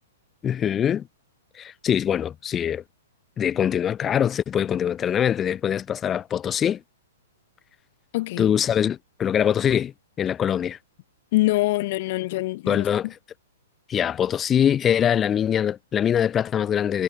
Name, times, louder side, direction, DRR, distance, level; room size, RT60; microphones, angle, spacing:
voice 1, 0.4-1.0 1.6-2.8 3.4-6.8 8.4-10.8 12.7-13.1 13.9-17.0, left 9 dB, 20° left, 1.0 m, -23 dB
voice 2, 8.1-8.5 11.3-13.1, left 19 dB, 40° left, 1.3 m, -24 dB
figure-of-eight pair, 110°, 0 cm